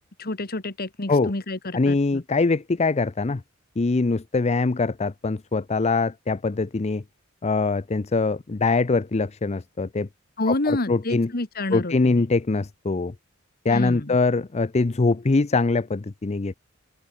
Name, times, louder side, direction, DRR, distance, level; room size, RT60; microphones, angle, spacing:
voice 1, 0.2-2.2 10.4-12.2 13.7-14.2, left 2 dB, 45° left, 2.0 m, -29 dB
voice 2, 1.7-3.4 3.8-7.0 7.4-10.1 10.5-11.3 11.7-13.1 13.6-16.5, left 3 dB, 30° left, 0.6 m, -23 dB
open air
head